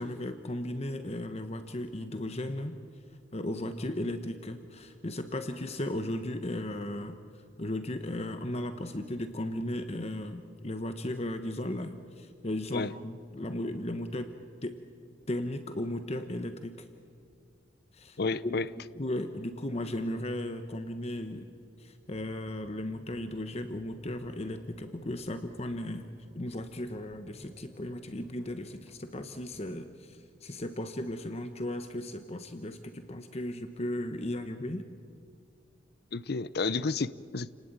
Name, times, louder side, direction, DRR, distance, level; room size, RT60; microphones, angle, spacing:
voice 1, 0.0-2.7 3.3-7.1 7.6-14.3 14.6-14.8 15.3-16.7 17.9-18.2 18.4-18.6 19.0-21.4 21.8-26.1 26.3-34.8, left 1 dB, 35° left, 1.0 m, -36 dB
voice 2, 18.2-18.7 36.1-37.5, left 4 dB, 55° left, 0.6 m, -31 dB
sound 1, 22.1-29.8, left 1 dB, 10° right, 3.8 m, -57 dB
29.5 x 19.0 x 8.9 m
head